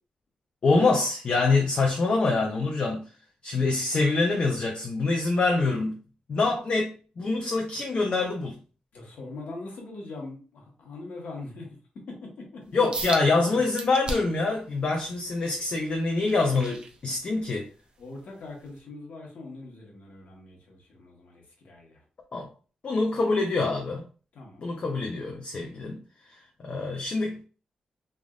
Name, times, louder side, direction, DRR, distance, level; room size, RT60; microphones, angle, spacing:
voice 1, 0.6-3.0 3.4-6.0 6.3-8.6 12.7-17.7 22.3-22.5 22.8-24.0 24.6-26.0 26.6-27.4, left 3 dB, 50° left, 0.6 m, -25 dB
voice 2, 8.9-12.9 13.5-13.6 18.0-22.0 24.3-24.7, left 2 dB, 75° left, 1.2 m, -42 dB
sound 1, 12.9-13.3 13.8-14.4 14.9-17.5 18.0-18.2 18.8-18.9, right 2 dB, 40° right, 0.5 m, -36 dB
3.4 x 2.5 x 2.4 m
cardioid pair, 105°, 3 cm